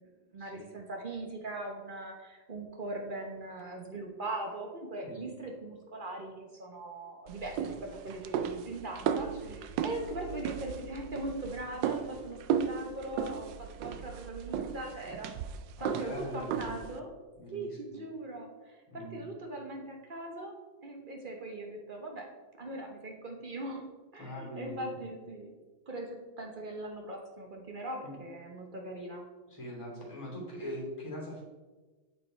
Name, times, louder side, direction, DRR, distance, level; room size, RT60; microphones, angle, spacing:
voice 1, 0.3-15.3 15.8-17.1 17.5-20.6 20.8-22.3 22.6-23.8 24.1-25.5 25.9-29.3, right 2 dB, 45° right, 1 dB, 0.6 m, -40 dB
sound 1, 7.3-17.0, right 7 dB, 75° right, 1.1 m, -35 dB
voice 2, 15.8-16.8 17.4-18.0 18.9-19.2 24.2-24.8 28.0-28.2 29.5-31.4, equal, 15° left, -4 dB, 2.6 m, -42 dB
8.8 x 5.5 x 4.4 m, 1.3 s
omnidirectional pair, 2.2 m